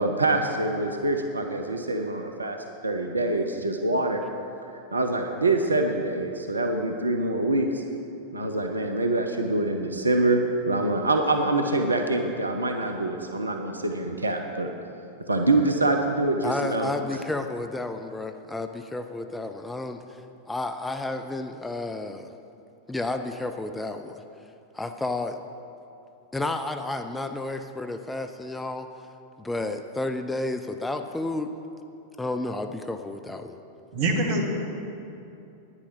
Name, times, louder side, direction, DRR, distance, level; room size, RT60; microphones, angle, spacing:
voice 1, 0.0-2.6 2.8-4.2 4.9-7.8 8.3-14.7 15.3-16.9, right 2 dB, 80° right, 4 dB, 0.7 m, -25 dB
voice 2, 16.4-20.2 20.5-22.3 22.9-24.2 24.7-25.4 26.3-28.9 29.4-31.5 32.2-33.6, left 2 dB, 10° left, 7 dB, 0.5 m, -31 dB
voice 3, 33.9-34.5, right 2 dB, 50° right, 1 dB, 1.7 m, -24 dB
9.9 x 9.8 x 5.9 m, 2.8 s
figure-of-eight pair, 90°, 0 cm